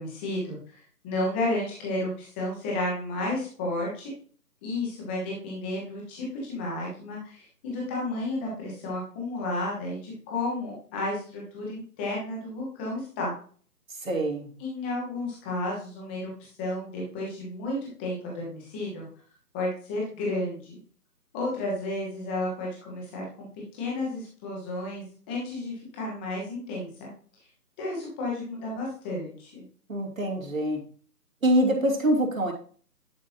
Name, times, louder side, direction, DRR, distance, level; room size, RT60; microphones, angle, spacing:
voice 1, 0.0-4.1 4.6-13.3 14.6-19.1 19.5-20.8 21.3-23.5 23.7-27.1 27.8-29.6, left 2 dB, 5° left, -3 dB, 1.2 m, -32 dB
voice 2, 14.0-14.5 29.9-30.8 31.4-32.5, right 1 dB, 55° right, 2 dB, 2.8 m, -25 dB
11.0 x 5.4 x 2.8 m, 0.43 s
figure-of-eight pair, 150°, 48 cm